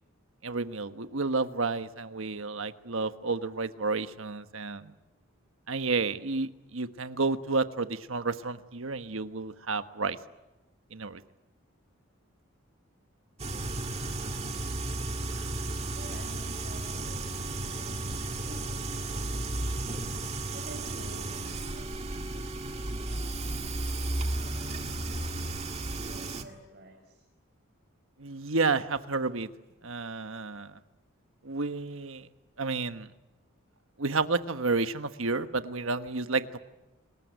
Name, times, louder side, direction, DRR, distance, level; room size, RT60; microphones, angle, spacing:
voice 1, 0.4-4.9 5.7-10.2 10.9-11.2 28.2-29.5 29.8-30.7 31.4-32.3 32.6-33.1 34.0-36.6, right 3 dB, 70° right, 10 dB, 1.3 m, -31 dB
sound 1, 13.4-26.4, right 2 dB, 30° right, 1.9 m, -34 dB
voice 2, 15.9-25.3 26.0-27.2, right 1 dB, 45° right, 0 dB, 5.4 m, -51 dB
28.5 x 21.0 x 9.3 m, 1.0 s
head